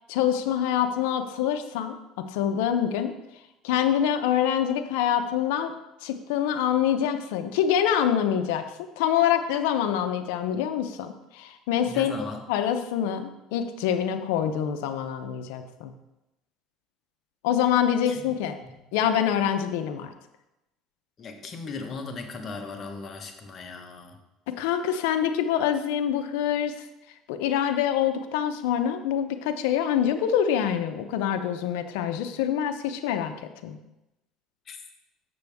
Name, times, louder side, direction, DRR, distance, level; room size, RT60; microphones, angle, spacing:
voice 1, 0.1-3.1 3.6-5.7 6.0-12.1 12.5-15.9 17.4-18.5 18.9-20.1 24.5-26.8 27.3-33.8, left 9 dB, 90° left, 8 dB, 0.6 m, -25 dB
voice 2, 11.9-12.4 18.1-18.2 18.6-18.8 21.2-24.2 34.7-34.8, left 4 dB, 35° left, 4 dB, 1.1 m, -37 dB
6.9 x 6.7 x 3.5 m, 0.94 s
supercardioid pair, 115°, 0 cm